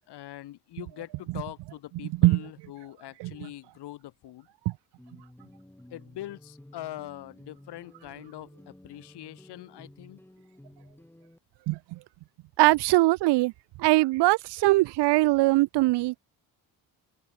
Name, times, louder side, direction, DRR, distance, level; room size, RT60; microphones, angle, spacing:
voice 1, 0.1-4.5 5.9-10.2, left 14 dB, 80° left, 5.5 m, -43 dB
sound 1, 5.0-11.4, left 1 dB, 5° left, 4.1 m, -53 dB
voice 2, 11.7-12.0 12.6-13.5 13.8-16.2, right 20 dB, 90° right, 1.0 m, -21 dB
cardioid pair, 95°, 40 cm